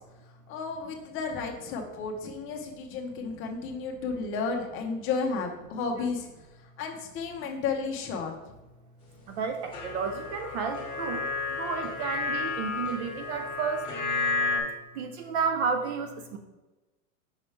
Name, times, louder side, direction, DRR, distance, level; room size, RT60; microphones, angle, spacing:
voice 1, 0.5-6.3 6.8-8.3, left 4 dB, 30° left, 2 dB, 0.9 m, -32 dB
voice 2, 9.3-13.8 14.9-16.4, right 5 dB, 50° right, 7 dB, 0.7 m, -32 dB
sound 1, 9.7-14.6, left 4 dB, 10° left, 1.5 m, -32 dB
5.6 x 5.1 x 3.3 m, 1.1 s
supercardioid pair, 140°, 43 cm